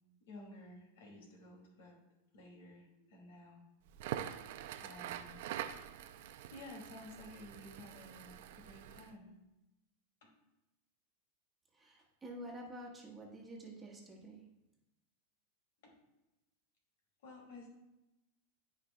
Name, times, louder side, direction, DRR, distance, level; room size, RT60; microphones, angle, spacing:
voice 1, 0.3-2.0 2.3-3.6 4.8-5.4 6.5-9.3 10.2-10.3 15.8-15.9 17.2-17.7, left 2 dB, 80° left, 0 dB, 2.5 m, -53 dB
Crackle, 3.9-9.1, right 11 dB, 65° right, 0.5 m, -45 dB
voice 2, 11.7-14.5, right 1 dB, 15° right, -2 dB, 1.4 m, -49 dB
12.5 x 5.1 x 2.3 m, 0.95 s
supercardioid pair, 140°, 0 cm